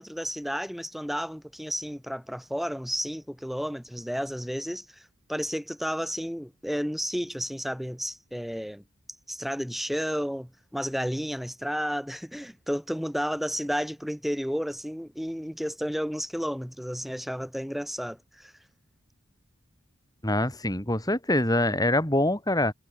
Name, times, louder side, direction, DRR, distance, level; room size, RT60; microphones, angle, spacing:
voice 1, 0.0-8.8 9.3-18.5, equal, ahead, 5.3 m, -32 dB
voice 2, 20.2-22.7, left 1 dB, 15° left, 4.3 m, -24 dB
head